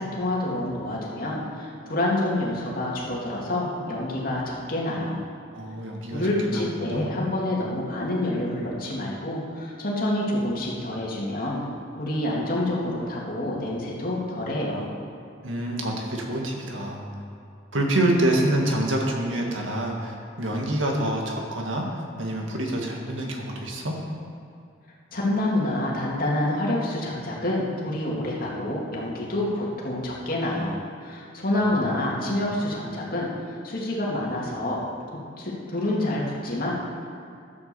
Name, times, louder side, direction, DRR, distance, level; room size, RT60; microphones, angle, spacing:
voice 1, 0.0-5.2 6.1-11.6 12.0-14.9 25.1-34.8 35.4-36.7, left 1 dB, 45° left, -4 dB, 2.6 m, -27 dB
voice 2, 5.5-7.2 15.4-17.0 17.7-24.0 31.8-32.4, right 1 dB, 75° right, 0 dB, 2.0 m, -27 dB
12.0 x 8.5 x 7.0 m, 2.4 s
head